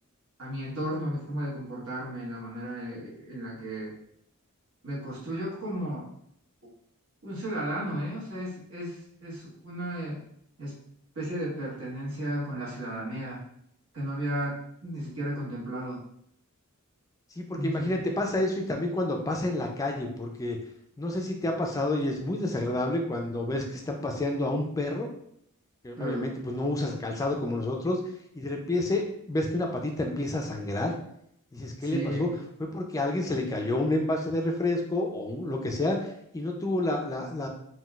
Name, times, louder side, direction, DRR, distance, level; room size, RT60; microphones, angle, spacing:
voice 1, 0.4-3.9 4.8-6.1 7.2-10.2 10.6-10.8 11.1-13.4 13.9-16.0 17.5-17.9 25.9-26.2 31.8-32.3, right 1 dB, 70° right, -6 dB, 1.2 m, -34 dB
voice 2, 17.4-20.6 21.0-25.1 25.8-28.0 28.3-30.9 31.5-32.3 32.6-37.5, left 1 dB, 15° left, 2 dB, 0.3 m, -29 dB
3.7 x 2.3 x 2.3 m, 0.72 s
head